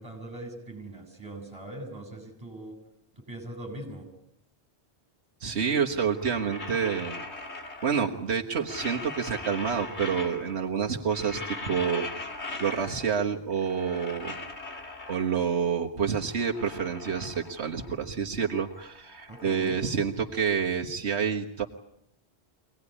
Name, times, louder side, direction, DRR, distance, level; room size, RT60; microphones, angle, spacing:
voice 1, 0.0-2.8 3.3-4.1 19.3-19.7, right 2 dB, 25° right, 3 dB, 8.0 m, -41 dB
voice 2, 5.4-7.2 7.8-12.3 12.6-14.4 15.1-21.7, right 6 dB, 85° right, 1 dB, 1.7 m, -28 dB
sound 1, 6.1-8.2 8.5-10.7 11.0-13.2 13.5-15.6 16.0-18.1 18.3-20.5, left 2 dB, 90° left, 2.9 m, -40 dB
25.0 x 18.5 x 10.0 m, 0.78 s
omnidirectional pair, 1.1 m